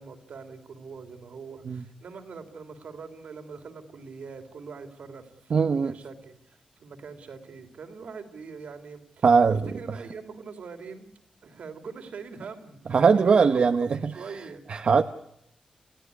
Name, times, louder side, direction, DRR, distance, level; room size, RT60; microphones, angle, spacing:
voice 1, 0.0-11.1 11.4-13.6 14.0-14.6, right 5 dB, 80° right, 5 dB, 3.3 m, -43 dB
voice 2, 5.5-5.9 9.2-9.6 12.9-14.1 14.7-15.0, right 5 dB, 60° right, 7 dB, 0.9 m, -20 dB
28.0 x 16.0 x 9.7 m, 0.80 s
wide cardioid pair, 100°, 2 cm